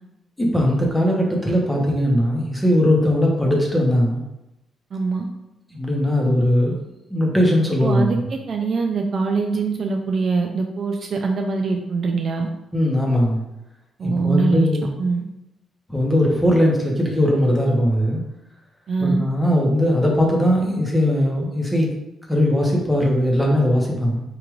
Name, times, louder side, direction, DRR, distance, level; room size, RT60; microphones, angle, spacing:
voice 1, 0.4-4.2 5.7-6.8 7.1-8.2 12.7-13.4 14.0-14.9 15.9-18.2 19.0-21.9 22.3-24.2, equal, 5° left, -2 dB, 0.9 m, -19 dB
voice 2, 4.9-5.3 7.8-8.2 8.5-12.5 14.0-14.7 15.0-15.2 18.9-19.2, right 4 dB, 45° right, 2 dB, 0.4 m, -23 dB
4.8 x 2.4 x 3.1 m, 0.92 s
cardioid pair, 125°, 0 cm